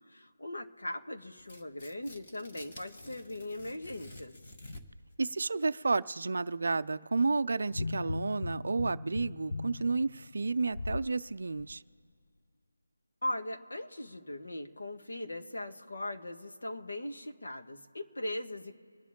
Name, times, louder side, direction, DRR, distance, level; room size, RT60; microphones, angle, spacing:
voice 1, 0.1-4.3 13.2-18.7, left 1 dB, 70° left, 4 dB, 1.5 m, -39 dB
Tearing, 1.4-5.1, left 1 dB, 20° left, 1.0 m, -50 dB
voice 2, 5.2-11.8, right 3 dB, 45° right, 13 dB, 0.4 m, -31 dB
sound 1, 7.7-11.1 11.6-11.7, left 3 dB, 50° left, 0.3 m, -38 dB
25.5 x 10.0 x 3.7 m, 2.1 s
figure-of-eight pair, 175°, 0 cm